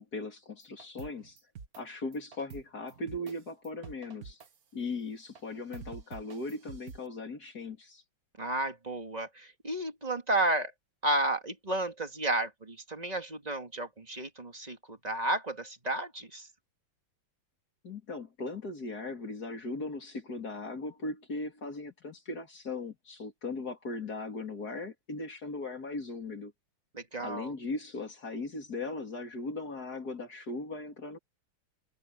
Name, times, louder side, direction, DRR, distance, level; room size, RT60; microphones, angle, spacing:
voice 1, 0.0-1.4 1.8-4.4 4.7-8.0 17.8-26.5 27.2-31.2, left 2 dB, 45° left, 3.5 m, -38 dB
sound 1, 0.6-1.8 2.1-3.3 3.6-4.6 5.4-5.5 5.7-7.1, right 6 dB, 45° right, 1.7 m, -47 dB
voice 2, 8.4-10.7 11.0-16.5 26.9-27.5, right 2 dB, 20° right, 2.0 m, -32 dB
omnidirectional pair, 2.3 m